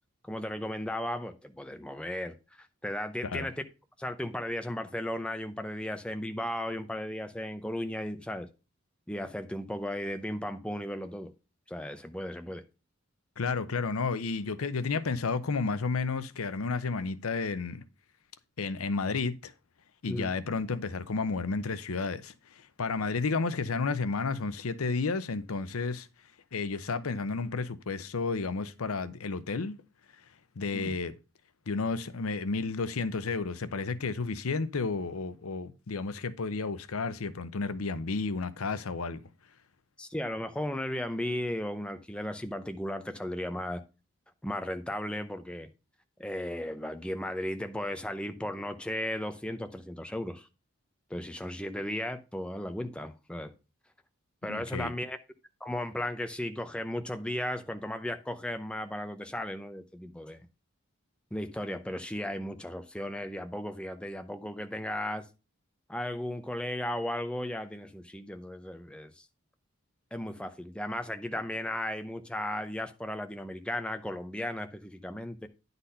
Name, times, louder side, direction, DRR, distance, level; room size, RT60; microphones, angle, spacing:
voice 1, 0.2-3.6 4.0-8.5 9.1-11.3 11.7-12.6 20.1-20.3 30.7-30.9 40.0-43.8 44.4-45.7 46.2-50.5 51.1-53.5 54.4-55.2 55.6-60.5 61.3-65.3 65.9-69.3 70.1-75.5, left 1 dB, 5° left, 0.6 m, -35 dB
voice 2, 13.4-17.8 18.6-19.5 20.0-26.1 26.5-29.8 30.6-31.1 31.7-39.2 54.5-54.9, left 4 dB, 85° left, 0.7 m, -32 dB
10.0 x 4.1 x 5.5 m
head